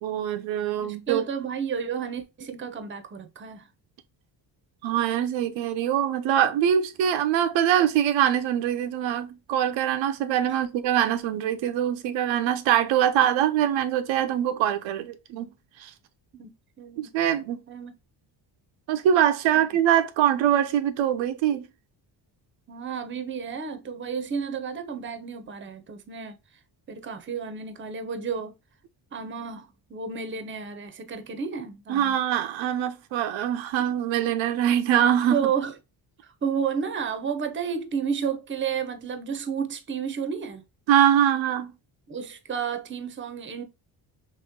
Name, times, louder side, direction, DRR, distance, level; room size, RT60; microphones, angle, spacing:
voice 1, 0.0-1.2 4.8-15.5 15.8-15.9 17.0-17.6 18.9-21.7 31.9-35.5 40.9-41.7, right 10 dB, 85° right, 0.6 m, -23 dB
voice 2, 0.8-3.7 10.4-10.6 16.3-17.1 17.7-17.9 19.5-19.7 22.7-26.4 26.9-28.5 29.1-32.2 35.3-35.7 36.4-40.6 42.1-43.6, right 6 dB, 25° right, 0.6 m, -31 dB
3.0 x 3.0 x 3.5 m
cardioid pair, 90°, 45 cm